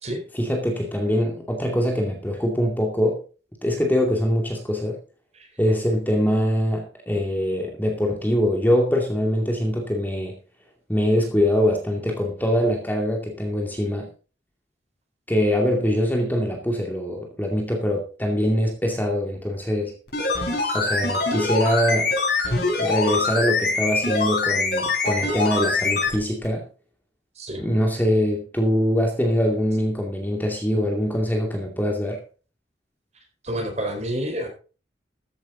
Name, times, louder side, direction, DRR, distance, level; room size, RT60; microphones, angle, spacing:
voice 1, 0.3-3.2 3.6-5.0 5.6-10.4 10.9-14.1 15.3-19.9 20.7-22.1 22.8-26.6 27.6-32.2, equal, 10° left, 1 dB, 2.4 m, -23 dB
sound 1, 20.1-26.2 26.4-26.5, left 3 dB, 55° left, 7.2 m, -24 dB
voice 2, 27.4-27.7 33.4-34.5, right 1 dB, 35° right, 3 dB, 4.4 m, -29 dB
14.0 x 10.5 x 3.9 m, 0.35 s
head